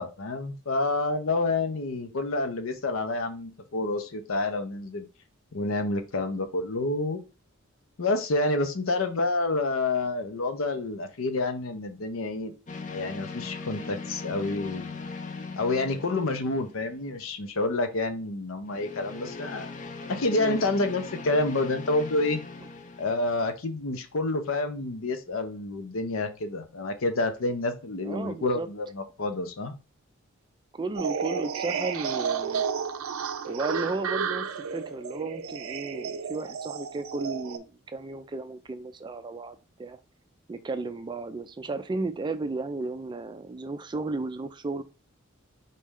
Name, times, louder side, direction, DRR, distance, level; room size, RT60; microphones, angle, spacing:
voice 1, 0.0-5.1 5.5-7.2 8.0-12.5 12.9-14.9 15.6-19.7 20.1-22.4 23.0-29.7, left 2 dB, 75° left, 0.7 m, -28 dB
sound 1, 12.7-17.1 18.7-23.5, left 4 dB, 35° left, 0.5 m, -40 dB
voice 2, 20.3-20.6 28.0-28.7 30.7-32.7 33.5-40.0 40.5-44.8, right 3 dB, 20° right, 0.3 m, -34 dB
sound 2, 30.9-37.6, right 6 dB, 85° right, 0.5 m, -32 dB
4.1 x 3.2 x 3.6 m
head